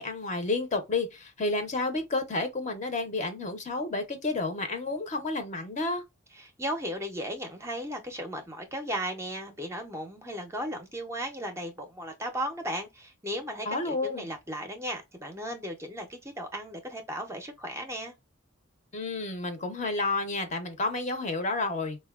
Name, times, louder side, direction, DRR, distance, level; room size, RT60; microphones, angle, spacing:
voice 1, 0.0-6.0 13.7-14.3 18.9-22.0, left 3 dB, 35° left, 0.6 m, -30 dB
voice 2, 6.3-18.1, equal, 15° right, 0.5 m, -36 dB
4.0 x 2.2 x 2.3 m
head